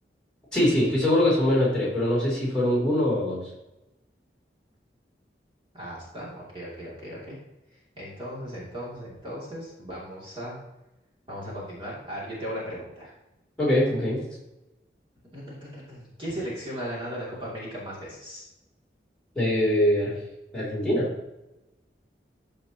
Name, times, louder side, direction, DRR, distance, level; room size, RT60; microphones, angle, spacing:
voice 1, 0.5-3.4 13.6-14.2 19.3-20.1 20.5-21.1, left 1 dB, 5° left, -9 dB, 3.3 m, -23 dB
voice 2, 5.7-7.4 8.0-10.6 11.3-13.1 15.3-18.5, equal, 30° right, -7 dB, 2.7 m, -37 dB
14.0 x 5.1 x 3.0 m, 0.95 s
head